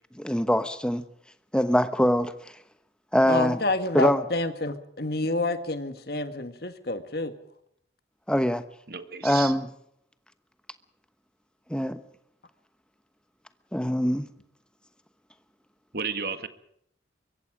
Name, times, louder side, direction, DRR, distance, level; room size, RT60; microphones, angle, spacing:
voice 1, 0.1-1.0 1.5-2.3 3.1-3.6 3.9-4.2 8.3-8.6 9.2-9.7 11.7-12.0 13.7-14.3, equal, 5° left, 1.0 m, -23 dB
voice 2, 3.3-7.3, left 2 dB, 55° left, 1.9 m, -28 dB
voice 3, 8.9-9.5 15.9-16.5, right 6 dB, 55° right, 1.7 m, -32 dB
24.0 x 23.0 x 5.0 m
head